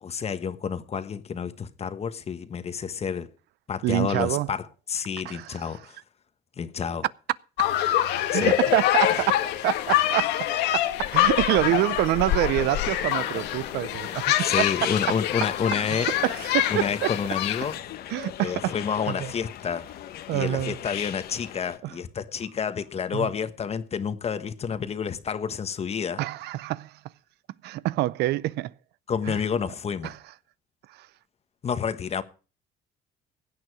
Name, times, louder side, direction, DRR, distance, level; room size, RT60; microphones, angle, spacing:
voice 1, 0.0-3.3 3.7-6.0 6.6-7.0 8.3-8.5 14.4-16.1 16.7-17.8 18.4-19.9 20.3-26.2 29.1-30.1 31.6-32.2, left 7 dB, 40° left, 1.3 m, -29 dB
voice 2, 3.8-4.5 5.2-5.6 8.3-14.9 15.9-17.1 18.1-18.7 19.1-19.3 20.3-20.8 21.8-22.0 23.1-23.3 26.2-27.0 27.6-28.7 29.3-29.4 30.0-30.2 30.9-31.1, right 16 dB, 80° right, 0.5 m, -27 dB
sound 1, 7.6-17.8, left 13 dB, 85° left, 1.5 m, -25 dB
sound 2, 12.2-21.8, left 11 dB, 65° left, 1.1 m, -38 dB
16.5 x 9.1 x 4.8 m
cardioid pair, 110°, 17 cm